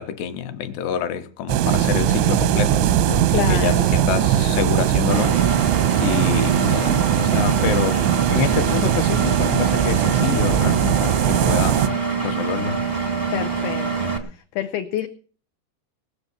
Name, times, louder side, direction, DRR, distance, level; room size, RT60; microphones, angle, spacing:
voice 1, 0.0-5.6 5.9-8.0 8.3-12.8, left 9 dB, 75° left, 2.9 m, -27 dB
sound 1, 1.5-11.9, right 11 dB, 85° right, 3.3 m, -20 dB
voice 2, 3.3-3.8 13.3-14.1 14.6-15.1, left 12 dB, 90° left, 2.1 m, -26 dB
Engine, 5.1-14.2, right 5 dB, 55° right, 0.4 m, -25 dB
20.0 x 7.3 x 6.9 m
omnidirectional pair, 5.4 m